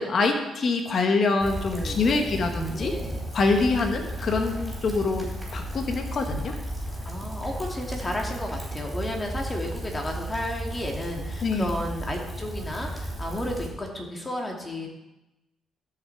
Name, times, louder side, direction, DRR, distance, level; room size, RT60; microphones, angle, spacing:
voice 1, 0.0-2.9 3.3-6.5 11.4-11.7, left 3 dB, 50° left, 4 dB, 1.4 m, -25 dB
Rain, 1.4-13.7, right 1 dB, ahead, 4.3 m, -34 dB
voice 2, 1.7-2.4 2.7-3.2 7.0-14.9, left 1 dB, 20° left, 1 dB, 2.3 m, -33 dB
13.5 x 6.1 x 4.6 m, 0.98 s
cardioid pair, 90°, 0 cm